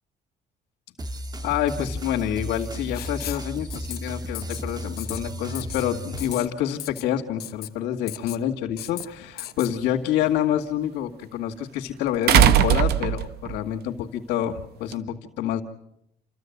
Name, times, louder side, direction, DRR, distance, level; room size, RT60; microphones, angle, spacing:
sound 1, 1.0-6.5, equal, 25° right, 1.5 m, -34 dB
voice 1, 1.4-15.6, left 10 dB, 90° left, -4 dB, 2.2 m, -27 dB
Writing, 2.9-3.5 3.7-4.0 4.3-4.6 5.0-5.2 5.6-5.9 6.2-6.5 6.8-7.1 7.4-7.7 8.1-8.4 8.8-9.1 9.4-9.7, left 14 dB, 70° left, 1.1 m, -36 dB
sound 2, 9.0-9.1 12.3-13.6 14.9-15.0, right 10 dB, 70° right, 0.9 m, -18 dB
29.0 x 14.5 x 9.4 m, 0.78 s
cardioid pair, 110°, 17 cm